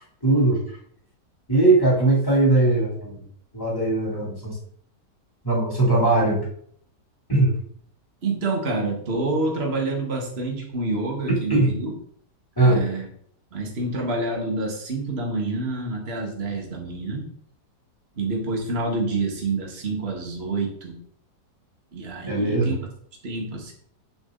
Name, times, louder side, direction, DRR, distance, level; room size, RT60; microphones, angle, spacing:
voice 1, 0.2-0.6 1.5-3.2 3.5-4.6 5.4-6.4 7.3-7.5 11.5-11.7 12.6-12.8 22.3-22.7, right 2 dB, 10° left, -5 dB, 3.6 m, -20 dB
voice 2, 8.2-11.9 12.6-13.0 13.5-17.3 18.2-21.0 21.9-22.8 23.2-23.7, right 2 dB, 35° right, 0 dB, 2.1 m, -27 dB
8.7 x 7.1 x 4.0 m, 0.63 s
omnidirectional pair, 1.9 m